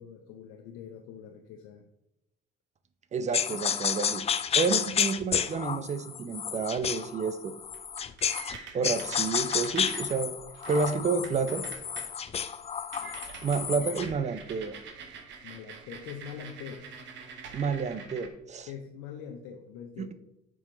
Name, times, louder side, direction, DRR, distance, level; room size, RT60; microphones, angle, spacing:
voice 1, 0.0-1.9 4.6-4.8 13.0-13.1 13.7-13.9 15.4-16.8 18.6-20.1, left 8 dB, 75° left, 3 dB, 0.7 m, -44 dB
voice 2, 3.1-4.2 4.5-7.5 8.7-10.3 10.7-11.6 13.4-14.8 17.5-18.7 20.0-20.1, right 5 dB, 35° right, 12 dB, 0.6 m, -30 dB
sound 1, 3.3-8.6 8.8-14.1, left 8 dB, 30° left, 0.4 m, -31 dB
sound 2, 7.6-12.1 12.5-12.6 12.9-18.3, right 6 dB, 60° right, 1.0 m, -45 dB
6.3 x 4.3 x 3.9 m, 0.87 s
supercardioid pair, 75°, 21 cm